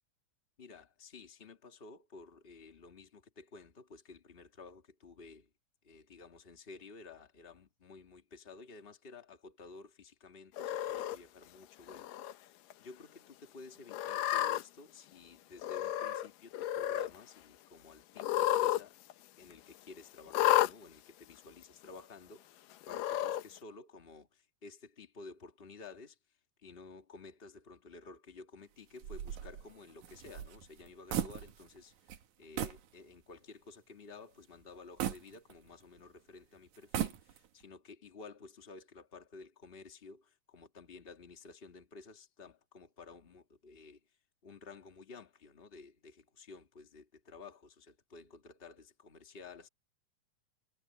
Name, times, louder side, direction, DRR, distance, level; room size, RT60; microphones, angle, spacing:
voice 1, 0.6-5.5 5.8-12.5 12.8-18.9 19.4-26.2 26.6-31.9 32.4-44.0 44.4-49.7, left 4 dB, 25° left, 1.4 m, -53 dB
Cat, 10.6-11.2 11.9-12.3 12.7-12.8 13.9-14.6 15.6-16.3 16.5-17.1 18.2-18.8 19.1-19.2 20.3-20.7 21.6-21.7 22.8-23.4, left 13 dB, 85° left, 2.5 m, -31 dB
sound 1, 29.0-31.8 32.1-32.2 32.6-32.9 33.4-33.5 35.0-36.0 36.7-37.6, right 11 dB, 65° right, 2.6 m, -38 dB
omnidirectional pair, 3.8 m